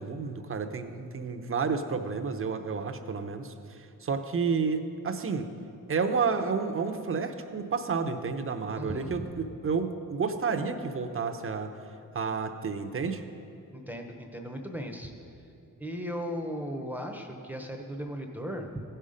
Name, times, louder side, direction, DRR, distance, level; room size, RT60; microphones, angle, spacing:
voice 1, 0.0-5.5 5.9-11.7 12.1-13.2, right 5 dB, 40° right, 7 dB, 0.8 m, -30 dB
voice 2, 8.8-9.2 13.7-15.1 15.8-18.8, equal, 5° right, 3 dB, 0.8 m, -36 dB
15.5 x 5.6 x 5.1 m, 2.8 s
cardioid pair, 90°, 34 cm